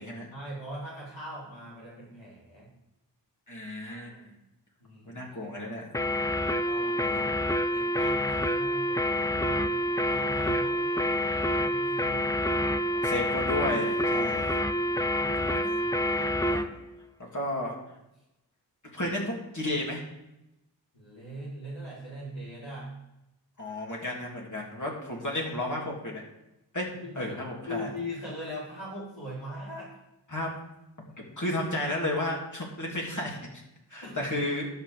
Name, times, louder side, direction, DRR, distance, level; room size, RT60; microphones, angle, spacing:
voice 1, 0.3-2.7 3.8-4.4 4.8-5.5 6.6-7.3 7.7-12.4 14.6-15.1 20.9-22.9 25.1-25.4 27.0-27.4 27.7-29.9 34.0-34.3, equal, 90° left, -8 dB, 4.5 m, -41 dB
voice 2, 3.5-4.3 5.1-5.9 7.0-7.3 12.5-14.6 15.3-15.8 16.1-16.7 17.3-17.7 18.8-20.0 23.6-26.2 26.7-26.9 27.1-27.9 30.3-30.6 31.4-33.4 33.9-34.7, left 1 dB, 40° left, -2 dB, 3.1 m, -33 dB
sound 1, 5.9-16.7, left 1 dB, 10° left, 0.6 m, -27 dB
11.0 x 6.2 x 6.9 m, 0.90 s
wide cardioid pair, 60°, 44 cm